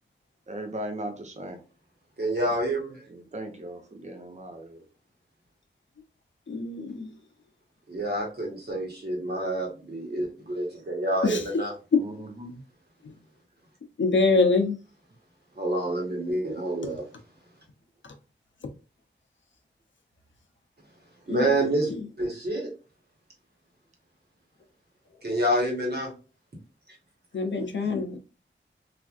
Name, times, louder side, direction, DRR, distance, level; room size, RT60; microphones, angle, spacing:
voice 1, 0.5-1.6 3.1-4.8 12.0-12.6, right 1 dB, 35° right, 0.7 m, -38 dB
voice 2, 2.2-3.0 7.9-11.7 15.5-17.1 21.3-21.9 22.2-22.7 25.2-26.1 27.8-27.9, right 1 dB, 55° right, 1.3 m, -28 dB
voice 3, 6.5-7.1 11.2-11.4 11.9-12.0 14.0-14.8 21.3-21.5 21.9-22.0 27.3-28.2, left 4 dB, 70° left, 0.6 m, -24 dB
3.3 x 2.5 x 2.4 m
wide cardioid pair, 75°, 20 cm